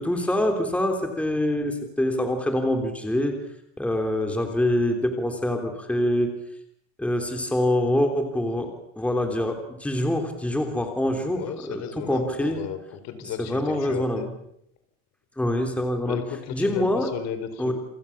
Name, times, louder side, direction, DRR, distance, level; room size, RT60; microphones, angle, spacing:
voice 1, 0.0-3.4 3.8-6.3 7.0-12.6 13.4-14.3 15.4-16.2 16.5-17.1 17.6-17.7, left 1 dB, 5° left, 4 dB, 3.4 m, -25 dB
voice 2, 11.4-14.3 16.0-17.7, left 9 dB, 55° left, 10 dB, 4.6 m, -34 dB
29.0 x 27.0 x 7.2 m, 0.73 s
cardioid pair, 165°, 33 cm